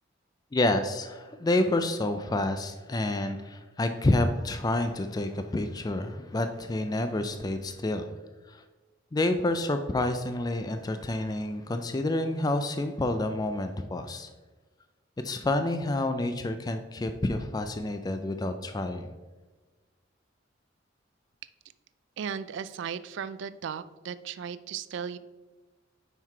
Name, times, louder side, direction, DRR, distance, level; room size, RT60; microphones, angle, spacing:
voice 1, 0.5-8.0 8.5-8.6 9.1-14.3 15.2-19.1, left 2 dB, 20° left, 8 dB, 0.3 m, -28 dB
voice 2, 22.2-25.2, right 7 dB, 65° right, 14 dB, 0.3 m, -36 dB
5.7 x 4.6 x 4.5 m, 1.2 s
head